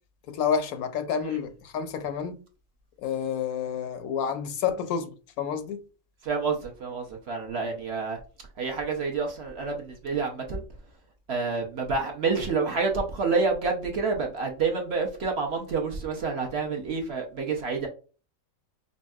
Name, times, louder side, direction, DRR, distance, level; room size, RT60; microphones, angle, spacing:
voice 1, 0.3-2.4 3.0-5.8, left 7 dB, 80° left, 1.1 m, -29 dB
voice 2, 6.2-8.2 8.6-10.6 11.3-17.9, right 4 dB, 50° right, 1.0 m, -28 dB
5.3 x 2.6 x 2.3 m
omnidirectional pair, 1.5 m